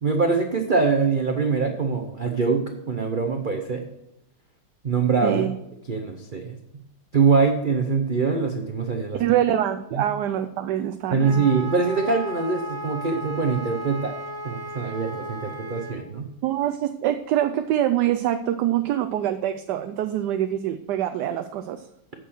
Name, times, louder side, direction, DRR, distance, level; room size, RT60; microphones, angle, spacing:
voice 1, 0.0-2.6 2.9-3.8 4.8-5.5 5.9-6.5 7.1-9.2 9.9-10.1 11.1-14.1 14.4-16.2, right 5 dB, 45° right, 4 dB, 0.6 m, -23 dB
voice 2, 5.2-5.6 9.2-11.4 16.4-21.9, right 11 dB, 75° right, 8 dB, 1.1 m, -25 dB
Wind instrument woodwind instrument, 11.2-16.0, equal, 15° left, 1.6 m, -35 dB
9.3 x 6.3 x 6.3 m, 0.82 s
omnidirectional pair, 2.0 m